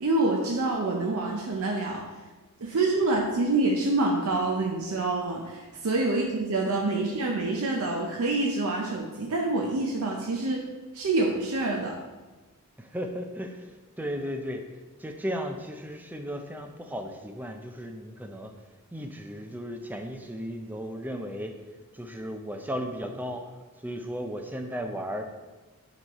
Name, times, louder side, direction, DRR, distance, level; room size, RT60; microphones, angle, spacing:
voice 1, 0.0-2.0 2.6-10.6 10.9-12.0, right 2 dB, 70° right, 0 dB, 0.6 m, -26 dB
voice 2, 12.8-14.6 15.0-18.5 18.9-21.5 21.9-23.5 23.8-25.2, equal, 10° right, 5 dB, 0.4 m, -35 dB
7.7 x 3.1 x 4.1 m, 1.2 s
head